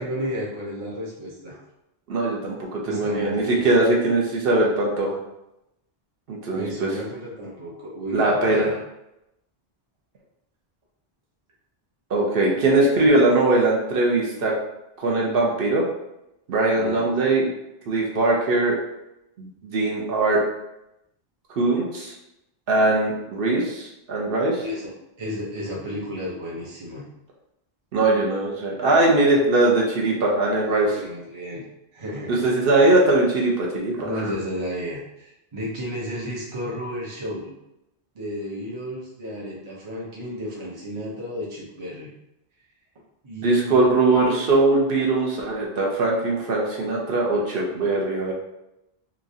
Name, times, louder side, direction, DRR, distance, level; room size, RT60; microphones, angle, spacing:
voice 1, 0.0-1.6 2.8-3.7 6.5-8.8 16.7-17.2 24.6-24.9 25.2-27.0 30.6-31.6 31.9-32.5 34.0-37.5 38.1-42.1 43.2-43.8, equal, 35° right, -5 dB, 0.6 m, -33 dB
voice 2, 2.1-5.2 6.3-6.9 8.1-8.7 12.1-14.5 15.0-15.8 16.5-17.5 17.9-18.8 19.4-20.4 21.5-22.1 22.7-24.6 27.9-31.0 32.3-34.3 43.4-48.3, right 2 dB, 70° right, -2 dB, 0.8 m, -21 dB
3.0 x 2.4 x 2.6 m, 0.87 s
omnidirectional pair, 1.0 m